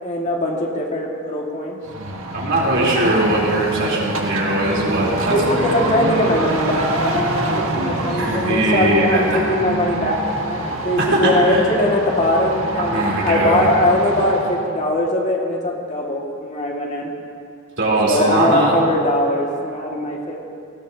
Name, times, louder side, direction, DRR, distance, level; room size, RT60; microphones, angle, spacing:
voice 1, 0.0-1.8 5.3-17.1 18.1-20.4, left 1 dB, 35° left, -1 dB, 1.9 m, -21 dB
sound 1, 1.8-14.6, right 2 dB, 80° right, 1.6 m, -25 dB
voice 2, 2.3-5.3 8.2-9.4 11.0-11.6 12.9-13.7 17.8-18.7, right 1 dB, 60° right, -5 dB, 3.6 m, -20 dB
18.5 x 17.5 x 2.8 m, 2.4 s
head